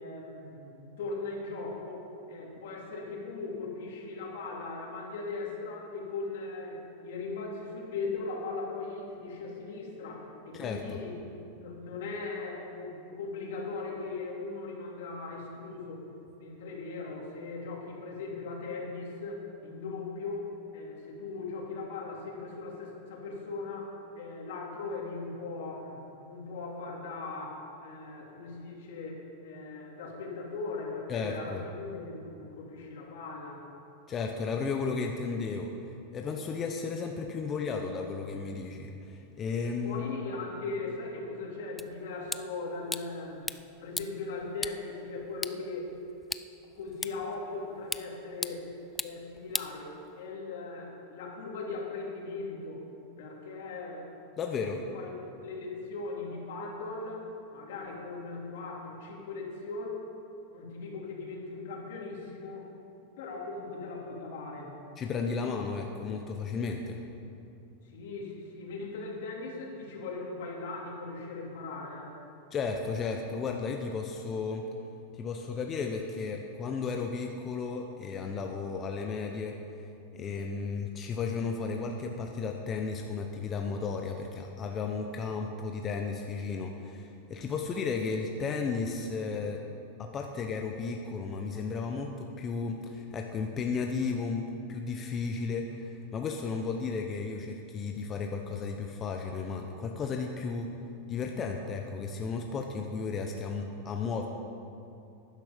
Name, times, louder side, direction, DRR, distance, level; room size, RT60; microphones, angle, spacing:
voice 1, 0.0-11.2 11.4-16.0 16.4-33.6 39.8-43.5 43.8-45.9 46.8-48.7 49.0-52.9 53.2-54.1 54.9-57.2 57.5-59.9 60.5-62.7 63.2-64.8 67.9-72.1, left 3 dB, 75° left, -1 dB, 2.8 m, -39 dB
voice 2, 10.5-11.0 31.1-31.6 34.1-35.7 36.1-40.0 54.4-54.8 65.0-67.0 72.5-74.7 75.2-79.5 80.1-89.6 90.0-100.7 101.1-104.3, left 4 dB, 25° left, 2 dB, 0.9 m, -34 dB
sound 1, 41.8-50.4, left 2 dB, 5° left, 0.3 m, -41 dB
12.0 x 10.5 x 5.2 m, 2.7 s
supercardioid pair, 135°, 0 cm